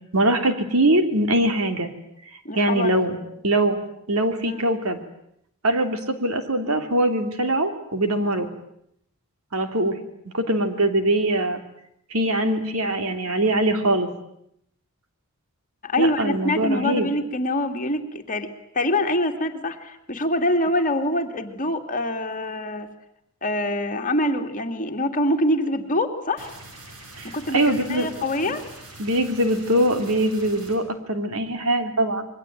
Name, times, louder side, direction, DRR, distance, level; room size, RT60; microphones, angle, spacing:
voice 1, 0.1-1.9 2.5-3.2 3.4-3.8 4.1-5.0 5.6-8.5 9.5-9.9 10.3-11.6 12.1-14.1 16.0-17.1 27.2-28.1 28.5-28.6 29.0-32.3, right 1 dB, 70° right, 7 dB, 3.2 m, -22 dB
voice 2, 2.4-3.0 4.5-4.6 15.8-18.5 18.7-22.9 23.4-26.5 27.3-28.6, left 1 dB, 35° left, 5 dB, 2.5 m, -25 dB
sound 1, 26.4-30.8, right 2 dB, 90° right, 6.8 m, -44 dB
27.5 x 22.5 x 9.1 m, 0.74 s
head